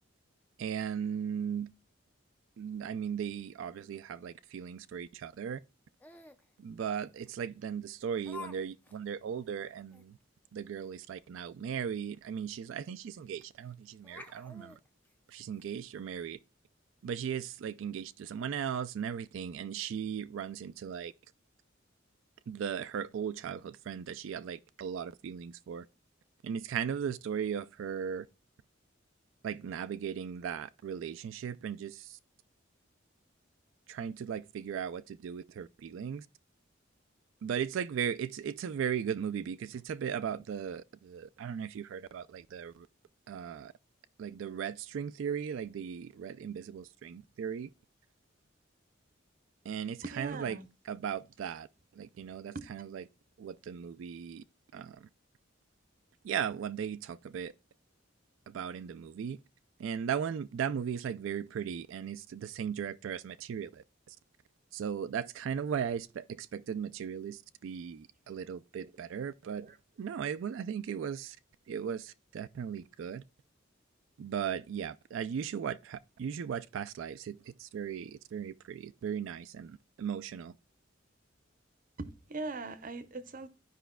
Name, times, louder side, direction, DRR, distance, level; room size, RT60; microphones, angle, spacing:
voice 1, 0.6-1.7 2.6-5.6 6.6-10.2 10.5-14.7 15.3-16.4 17.0-21.1 22.5-25.9 26.4-28.3 29.4-32.2 33.9-36.3 37.4-42.9 43.3-43.7 44.2-47.7 49.6-50.6 50.9-51.7 51.9-53.0 53.4-54.4 54.7-55.1 56.2-57.5 58.5-59.4 59.8-64.2 64.7-69.7 70.0-71.4 71.7-73.2 74.2-80.5, right 8 dB, 75° right, 0.3 m, -37 dB
Laughter, 6.0-6.4 7.3-7.4 8.2-8.6 8.8-9.0 9.4-9.5 9.9-10.0 12.0-12.1 12.4-12.5 13.4-13.7 14.0-15.7, left 4 dB, 10° left, 0.5 m, -49 dB
voice 2, 50.0-50.7 52.5-52.7 68.8-68.9 69.6-69.8 82.0-83.5, right 3 dB, 45° right, 0.7 m, -40 dB
13.5 x 5.0 x 2.2 m
head